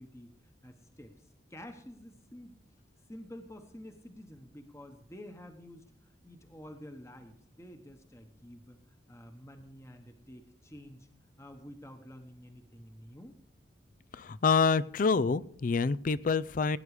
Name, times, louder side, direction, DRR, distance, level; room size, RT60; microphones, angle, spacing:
voice 1, 0.0-2.6 3.1-11.1 11.4-13.4, left 1 dB, 15° left, 6 dB, 1.1 m, -50 dB
voice 2, 14.1-16.8, left 4 dB, 45° left, 18 dB, 0.4 m, -27 dB
17.5 x 9.7 x 4.9 m, 0.65 s
head